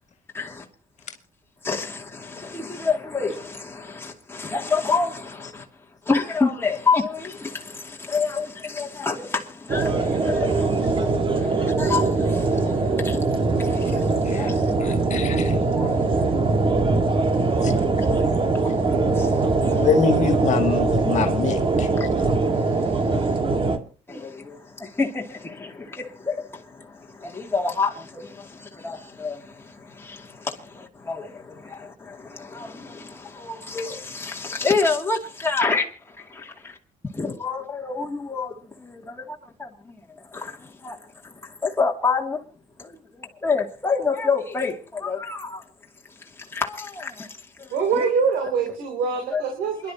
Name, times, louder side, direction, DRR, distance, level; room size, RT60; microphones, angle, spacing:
voice 1, 0.3-0.7 1.6-5.7 6.1-15.0 15.7-16.1 17.4-18.2 18.5-19.8 22.0-23.3 24.1-36.8 37.1-42.4 42.8-45.6 46.2-48.1 49.3-49.4 49.8-49.9, left 4 dB, 15° left, 2.6 m, -29 dB
sound 1, 9.7-23.8, right 3 dB, 35° right, 2.0 m, -22 dB
voice 2, 14.2-15.6 17.6-17.7 19.8-21.9, left 5 dB, 55° left, 2.2 m, -25 dB
voice 3, 47.7-49.9, right 5 dB, 90° right, 3.1 m, -24 dB
28.0 x 11.5 x 2.9 m
cardioid pair, 95°, 14 cm